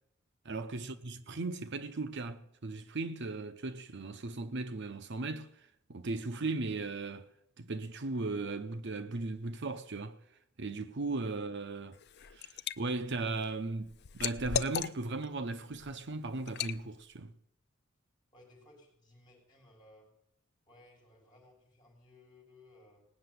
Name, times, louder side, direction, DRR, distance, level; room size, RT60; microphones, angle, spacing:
voice 1, 0.4-5.5 5.9-7.3 7.6-10.2 10.6-12.0 12.3-17.3, right 3 dB, 60° right, 0.8 m, -37 dB
Liquid, 11.9-12.8 13.2-15.3 15.7-15.9 16.5-16.8, left 7 dB, 55° left, 0.5 m, -36 dB
voice 2, 18.3-20.1 20.7-23.1, left 2 dB, 20° left, 5.6 m, -60 dB
18.5 x 6.8 x 9.4 m
head